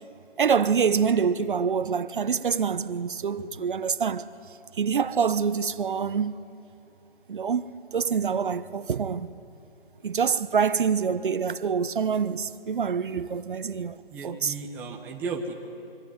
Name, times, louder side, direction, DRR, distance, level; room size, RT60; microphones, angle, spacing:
voice 1, 0.4-4.3 4.8-6.4 7.3-9.3 10.0-14.0 14.2-14.5, right 6 dB, 55° right, 1.0 m, -26 dB
voice 2, 14.1-15.7, right 4 dB, 5° right, 1.0 m, -34 dB
25.0 x 24.5 x 9.6 m
hypercardioid pair, 160°, 31 cm